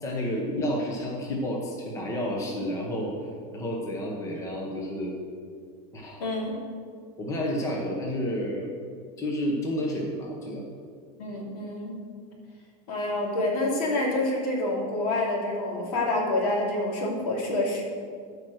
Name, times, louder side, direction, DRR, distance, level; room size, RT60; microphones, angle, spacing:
voice 1, 0.0-3.1 3.5-5.1 5.9-6.2 7.2-8.7 9.2-10.6, equal, 15° left, -1 dB, 1.1 m, -30 dB
voice 2, 6.2-6.6 11.2-12.0 12.9-17.8, left 2 dB, 75° left, -1 dB, 2.7 m, -27 dB
13.0 x 5.3 x 6.3 m, 2.1 s
supercardioid pair, 175°, 20 cm